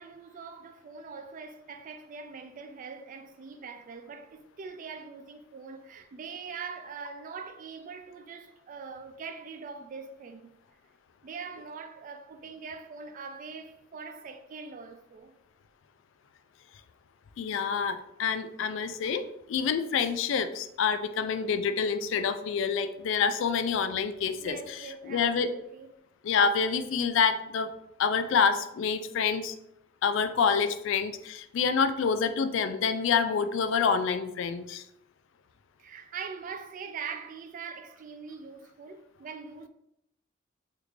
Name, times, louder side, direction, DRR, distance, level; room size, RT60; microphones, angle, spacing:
voice 1, 0.0-10.6 11.2-15.3 24.4-25.9 35.8-39.7, right 5 dB, 40° right, 0.3 m, -42 dB
voice 2, 17.4-19.2 19.5-24.8 25.0-25.5 26.2-27.7 28.0-29.6 30.0-34.8, left 6 dB, 70° left, 0.3 m, -27 dB
3.5 x 2.4 x 3.1 m
head